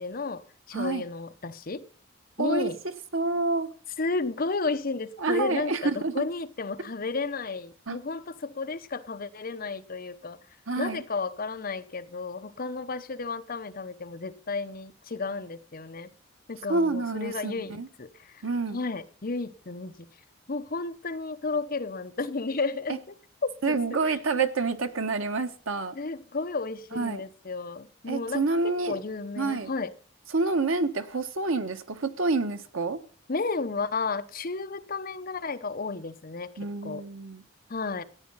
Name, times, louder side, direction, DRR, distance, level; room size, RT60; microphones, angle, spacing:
voice 1, 0.0-1.8 2.4-2.8 4.0-10.4 10.8-16.1 16.5-20.1 20.5-23.2 23.4-24.2 25.9-29.9 33.3-36.5 36.8-37.0 37.7-38.0, left 3 dB, 45° left, 0.9 m, -33 dB
voice 2, 0.7-1.0 2.4-2.7 3.1-3.7 5.2-6.2 7.9-8.0 10.7-11.0 16.7-17.9 18.4-18.8 22.9-23.0 23.6-25.9 26.9-27.2 28.1-29.0 29.4-29.7 30.3-33.0 36.6-37.4, right 3 dB, 85° right, 1.3 m, -28 dB
14.5 x 9.7 x 5.6 m
head